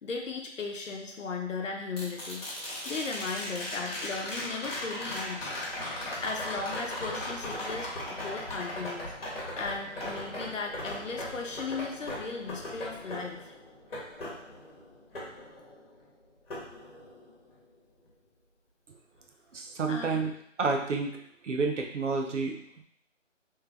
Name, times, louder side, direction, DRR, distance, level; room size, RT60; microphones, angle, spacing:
voice 1, 0.0-5.5 5.8-9.2 9.6-13.5 19.9-20.3, left 4 dB, 80° left, 2 dB, 0.8 m, -37 dB
sound 1, 2.0-16.1 16.5-17.5 19.8-19.9, left 1 dB, 50° left, 1.3 m, -38 dB
voice 2, 19.5-20.3 20.6-21.2 21.4-22.8, right 4 dB, 70° right, 2 dB, 0.7 m, -30 dB
3.2 x 3.2 x 2.3 m, 0.68 s
hypercardioid pair, 170°, 37 cm